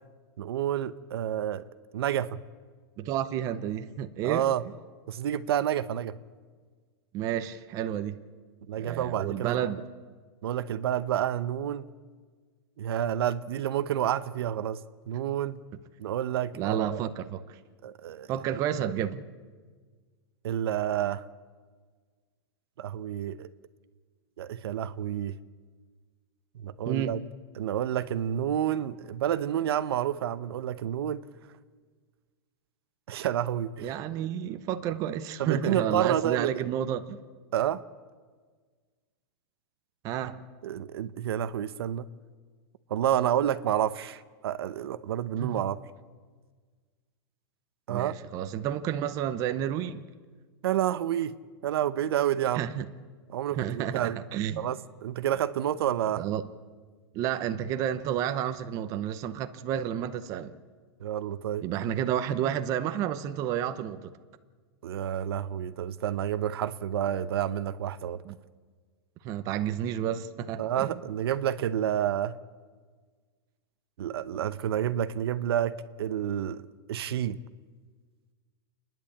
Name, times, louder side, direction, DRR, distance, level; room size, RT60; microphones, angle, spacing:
voice 1, 0.4-1.7 1.9-2.4 4.2-4.6 5.1-6.2 8.7-9.7 10.4-11.9 12.8-14.8 15.1-15.6 16.0-17.0 17.8-18.3 20.4-21.2 22.8-23.5 24.4-25.4 26.6-27.2 27.6-31.2 33.1-33.9 35.4-36.7 37.5-37.8 40.6-42.0 42.9-45.8 47.9-48.1 50.6-51.3 51.6-52.6 53.3-54.2 54.6-56.3 61.0-61.6 64.8-68.2 70.6-72.4 74.0-76.6 76.9-77.4, right 10 dB, 70° right, 14 dB, 0.8 m, -29 dB
voice 2, 3.0-4.5 7.1-8.2 8.8-9.8 16.6-17.6 18.3-19.3 26.9-27.2 33.8-37.2 40.0-40.4 45.4-45.6 47.9-50.0 52.5-52.9 53.5-54.7 56.2-56.4 57.1-60.5 61.6-64.1 68.2-68.4 69.2-71.0, right 10 dB, 25° right, 10 dB, 0.8 m, -31 dB
28.5 x 11.0 x 8.5 m, 1.5 s
supercardioid pair, 170°, 14 cm